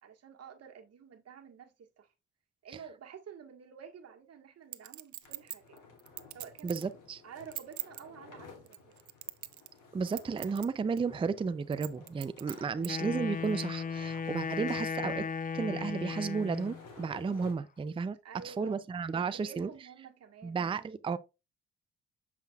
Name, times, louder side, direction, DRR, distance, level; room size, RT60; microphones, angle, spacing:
voice 1, 0.0-2.1 2.6-5.8 6.3-6.8 7.2-8.9 12.5-12.9 18.2-18.8 19.3-20.6, right 7 dB, 55° right, 1.5 m, -50 dB
Chink clink, 4.7-6.9 7.4-8.0 8.7-9.8 10.1-10.7 11.0-11.1 11.7-12.9 13.4-13.5, right 15 dB, 75° right, 0.6 m, -41 dB
sound 1, 5.2-17.5, left 4 dB, 85° left, 2.8 m, -55 dB
voice 2, 6.6-7.2 9.9-15.2 15.5-18.2 18.4-19.7 20.4-21.2, right 5 dB, 20° right, 0.4 m, -33 dB
Wind instrument woodwind instrument, 12.8-16.8, left 5 dB, 30° left, 0.6 m, -36 dB
7.2 x 5.8 x 2.3 m
cardioid pair, 90°, 30 cm